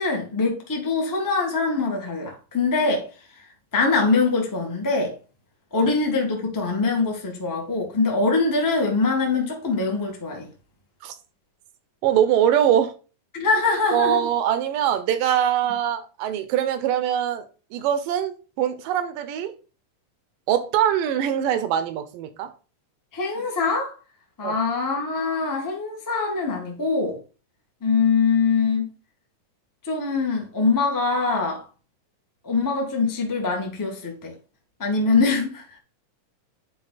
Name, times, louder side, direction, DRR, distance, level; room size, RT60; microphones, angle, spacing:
voice 1, 0.0-3.0 3.7-5.1 5.7-10.5 13.3-14.2 23.1-23.9 24.4-27.2 27.8-28.9 29.9-31.6 32.4-34.3 34.8-35.6, left 4 dB, 15° left, 0.6 m, -23 dB
voice 2, 12.0-12.9 13.9-19.5 20.5-22.5 24.4-24.6, right 10 dB, 85° right, 2.5 m, -23 dB
9.1 x 3.7 x 4.1 m
omnidirectional pair, 3.8 m